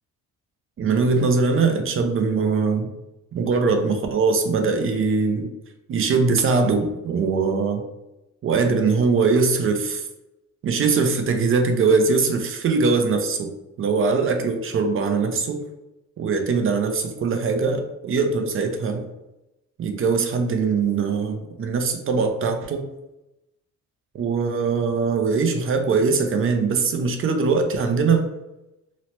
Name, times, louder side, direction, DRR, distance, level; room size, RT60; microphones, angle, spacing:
voice 1, 0.8-2.9 3.3-5.5 5.9-7.8 8.4-10.0 10.6-13.5 13.8-15.6 16.2-19.0 19.8-22.8 24.1-28.3, right 4 dB, 45° right, 5 dB, 0.5 m, -21 dB
3.0 x 2.0 x 2.9 m, 0.94 s
cardioid pair, 90°, 30 cm